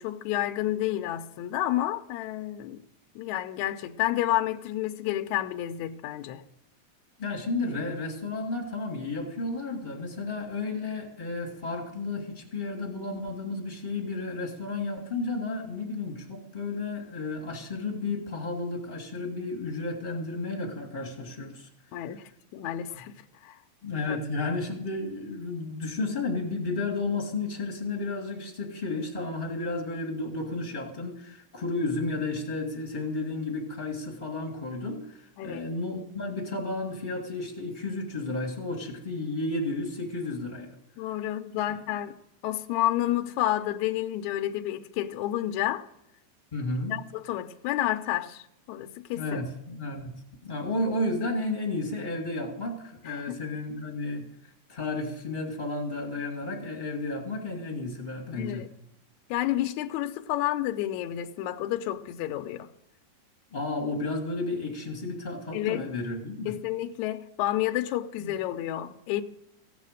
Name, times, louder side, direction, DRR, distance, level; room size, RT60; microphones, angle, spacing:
voice 1, 0.0-2.8 3.2-6.4 21.9-22.2 22.5-23.6 24.1-24.2 35.4-35.7 41.0-42.1 42.4-45.9 46.9-48.4 48.7-49.4 53.1-53.3 58.4-58.7 59.3-62.7 65.5-65.8 66.5-69.2, left 13 dB, 80° left, 1.8 m, -30 dB
voice 2, 7.2-21.7 22.9-23.0 23.8-40.7 46.5-47.0 49.1-50.1 50.4-54.2 54.7-58.6 63.5-66.5 68.2-68.3, left 2 dB, 30° left, 0.9 m, -32 dB
15.5 x 8.3 x 6.4 m
omnidirectional pair, 3.9 m